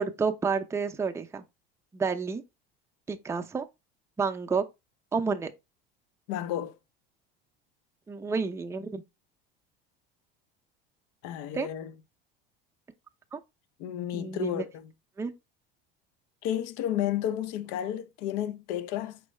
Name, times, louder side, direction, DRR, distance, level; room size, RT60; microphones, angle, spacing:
voice 1, 0.0-1.4 1.9-2.4 3.1-3.7 4.2-4.6 5.1-5.5 8.1-9.0 11.5-11.7 13.3-13.4 14.1-14.6 15.2-15.3, right 5 dB, 10° right, 0.5 m, -30 dB
voice 2, 6.3-6.8 11.2-11.9 13.8-14.9 16.4-19.2, left 11 dB, 65° left, 0.6 m, -32 dB
4.6 x 3.1 x 3.1 m
hypercardioid pair, 90°, 29 cm